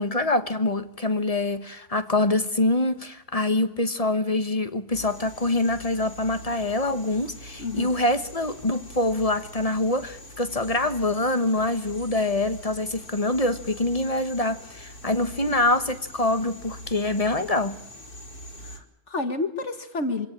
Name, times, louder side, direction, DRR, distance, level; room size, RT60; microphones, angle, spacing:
voice 1, 0.0-17.8, left 2 dB, 25° left, 1.3 m, -25 dB
sound 1, 4.9-18.8, equal, 85° left, 3.7 m, -43 dB
voice 2, 7.6-7.9 18.6-20.3, left 3 dB, 50° left, 1.9 m, -30 dB
25.5 x 17.0 x 8.8 m
omnidirectional pair, 1.5 m